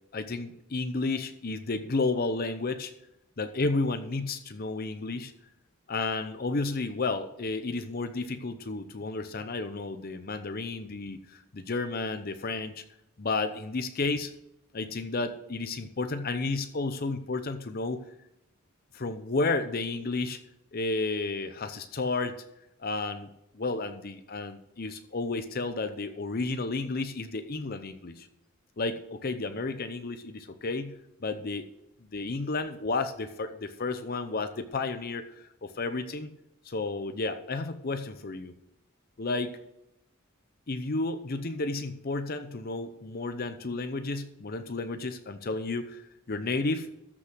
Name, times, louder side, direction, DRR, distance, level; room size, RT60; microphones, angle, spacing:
voice 1, 0.1-2.9 3.4-5.3 5.9-12.8 13.2-14.3 14.7-18.0 18.9-20.4 20.7-22.4 22.8-23.3 23.5-28.3 28.8-30.9 31.2-31.7 32.1-36.3 36.6-38.5 39.2-39.5 40.7-46.0 46.3-46.9, left 3 dB, 45° left, 9 dB, 0.7 m, -32 dB
14.0 x 6.1 x 6.1 m, 0.85 s
head